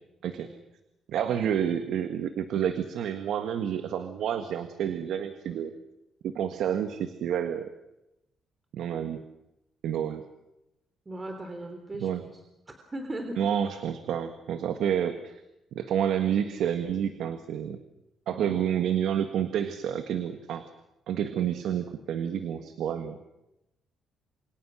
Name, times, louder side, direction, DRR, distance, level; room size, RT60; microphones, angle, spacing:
voice 1, 1.1-5.7 6.2-7.6 8.7-9.2 9.8-10.2 12.0-12.2 13.4-15.4 15.7-17.8 18.3-20.6 21.1-23.2, right 9 dB, 80° right, 8 dB, 1.6 m, -29 dB
voice 2, 11.0-12.4 12.7-13.4 18.3-18.6, right 1 dB, 25° right, 5 dB, 3.5 m, -38 dB
28.5 x 24.5 x 6.4 m, 0.90 s
cardioid pair, 90°, 0 cm